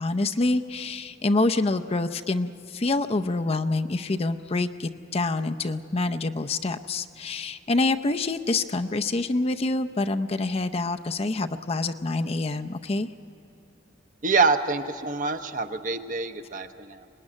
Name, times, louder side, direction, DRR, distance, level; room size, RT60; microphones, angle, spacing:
voice 1, 0.0-13.1, left 2 dB, 30° left, 7 dB, 0.6 m, -26 dB
voice 2, 14.2-17.1, right 4 dB, 45° right, 7 dB, 0.9 m, -26 dB
24.5 x 19.5 x 9.8 m, 2.8 s
head